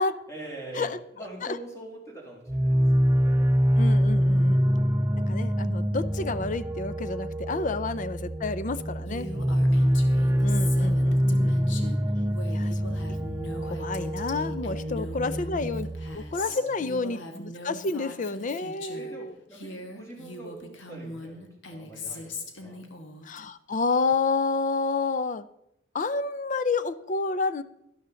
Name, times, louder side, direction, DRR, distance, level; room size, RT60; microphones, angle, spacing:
voice 1, 0.3-3.8 4.1-4.9 7.7-7.8 9.3-10.6 11.1-11.6 12.6-12.8 14.8-15.2 16.4-16.9 18.9-22.8, right 1 dB, 15° left, -2 dB, 3.2 m, -45 dB
sound 1, 2.5-16.2, equal, 15° right, 0.5 m, -25 dB
voice 2, 3.8-4.7 5.3-9.3 10.4-11.8 12.5-13.0 13.6-15.9 16.1-19.3 23.2-25.5 25.9-27.6, left 3 dB, 45° left, 14 dB, 0.5 m, -29 dB
Female speech woman speaking, 9.1-19.1 19.5-23.4, left 2 dB, 80° left, 1.4 m, -40 dB
12.0 x 11.5 x 3.9 m, 0.80 s
head